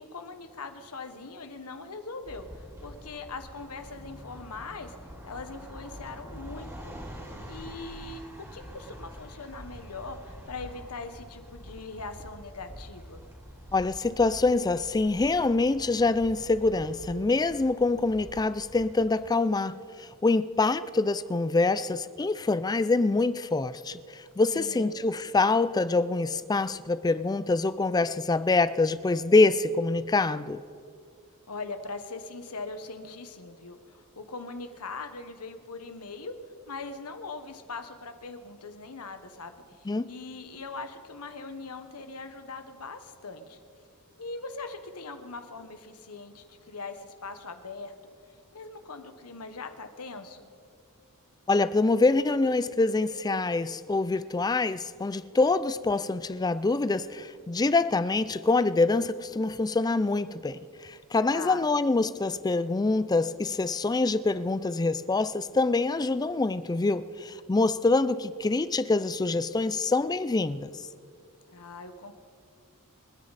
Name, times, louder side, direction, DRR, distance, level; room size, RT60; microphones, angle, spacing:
voice 1, 0.0-4.9 5.2-7.0 7.5-8.2 8.5-13.2 24.5-24.9 31.5-36.3 36.7-43.6 44.2-47.9 48.5-50.5 61.3-61.6 71.5-72.1, left 3 dB, 85° left, 1.2 m, -41 dB
sound 1, 2.2-19.1, equal, 15° right, 3.0 m, -46 dB
voice 2, 13.7-30.6 39.9-40.1 51.5-70.7, left 3 dB, 15° left, 0.4 m, -25 dB
28.5 x 9.8 x 4.1 m
head